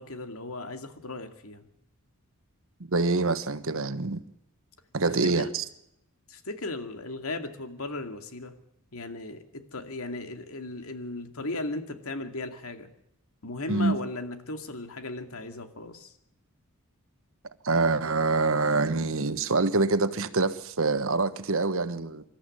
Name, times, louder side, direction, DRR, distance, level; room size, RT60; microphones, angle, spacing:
voice 1, 0.0-1.7 5.2-5.5 6.3-8.6 8.9-12.9 13.4-16.1, left 2 dB, 70° left, 2.5 m, -36 dB
voice 2, 2.9-4.2 4.9-5.6 13.7-14.0 17.6-22.2, right 3 dB, 65° right, 1.3 m, -25 dB
26.0 x 13.5 x 8.8 m
head